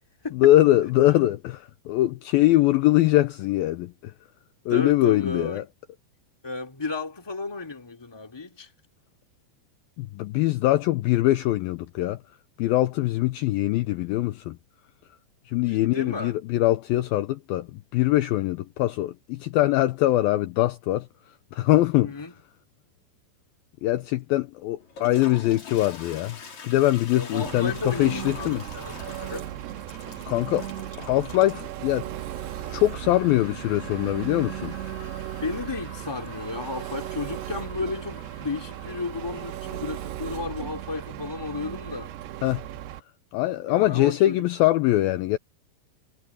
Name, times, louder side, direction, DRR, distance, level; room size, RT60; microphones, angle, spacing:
voice 1, 0.3-4.1 4.7-5.7 10.0-12.2 12.6-14.6 15.5-21.1 21.5-22.2 23.8-26.4 26.6-28.6 30.3-30.7 31.0-32.1 32.7-34.7 42.4-42.7 43.3-45.4, left 15 dB, 85° left, 2.1 m, -22 dB
voice 2, 4.7-5.6 6.4-8.7 15.7-16.3 22.0-22.3 27.1-29.5 35.4-42.1 43.7-44.4, left 3 dB, 10° left, 1.9 m, -33 dB
Toilet flush, 24.8-41.5, left 5 dB, 40° left, 4.9 m, -46 dB
Engine, 27.5-43.0, right 12 dB, 80° right, 3.0 m, -36 dB
omnidirectional pair, 5.0 m